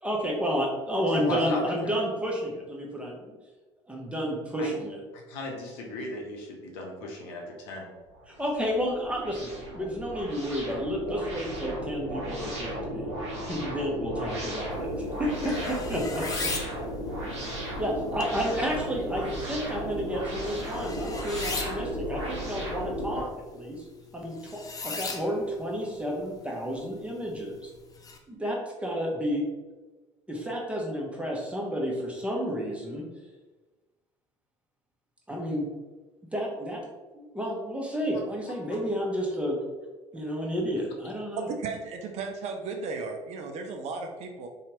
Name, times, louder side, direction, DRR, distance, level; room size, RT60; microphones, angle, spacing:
voice 1, 0.0-3.4 3.9-5.0 8.3-13.1 13.5-16.5 17.6-23.8 24.1-27.7 28.3-29.4 30.3-33.1 35.3-35.6 36.3-36.8 37.1-39.6 40.1-41.5, equal, 10° right, -2 dB, 0.8 m, -31 dB
voice 2, 1.1-2.0 4.6-4.7 5.3-7.9 15.4-15.7, left 2 dB, 70° left, 0 dB, 0.7 m, -35 dB
sound 1, 8.1-23.2, equal, 80° right, 0.7 m, -35 dB
sound 2, 14.7-28.2, left 4 dB, 25° left, 0.5 m, -41 dB
voice 3, 41.3-44.5, right 4 dB, 50° right, 3 dB, 0.5 m, -35 dB
2.8 x 2.3 x 2.9 m, 1.2 s
figure-of-eight pair, 60°, 15 cm